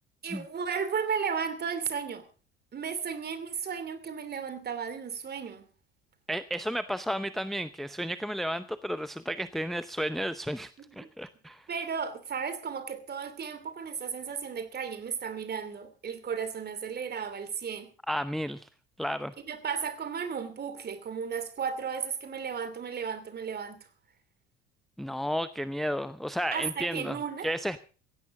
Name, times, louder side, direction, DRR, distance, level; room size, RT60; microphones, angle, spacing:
voice 1, 0.2-2.3 2.7-5.6 11.0-11.1 11.7-17.9 19.4-23.8 26.5-27.5, right 6 dB, 30° right, 2.9 m, -34 dB
voice 2, 6.3-11.7 18.1-18.7 19.0-19.3 25.0-27.2 27.4-27.8, equal, ahead, 0.7 m, -32 dB
16.5 x 16.0 x 3.8 m
figure-of-eight pair, 60°, 31 cm